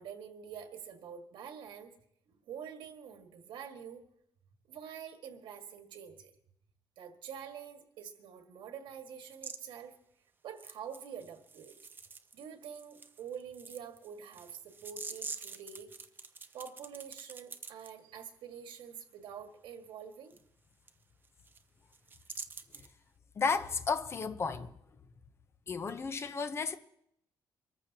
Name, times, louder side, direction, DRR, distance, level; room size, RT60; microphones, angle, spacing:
voice 1, 0.0-1.9 2.3-4.0 4.7-6.3 7.0-9.9 10.4-11.8 12.3-15.9 16.5-20.4, right 7 dB, 85° right, 1.9 m, -46 dB
sound 1, 9.3-9.6 10.6-12.4 12.7-17.9 20.3-20.4 20.9-21.0 21.2-21.6 21.9-22.9, right 4 dB, 25° right, 0.7 m, -46 dB
voice 2, 23.4-24.7 25.7-26.8, left 5 dB, 30° left, 0.8 m, -33 dB
24.5 x 14.0 x 2.9 m
cardioid pair, 155°, 8 cm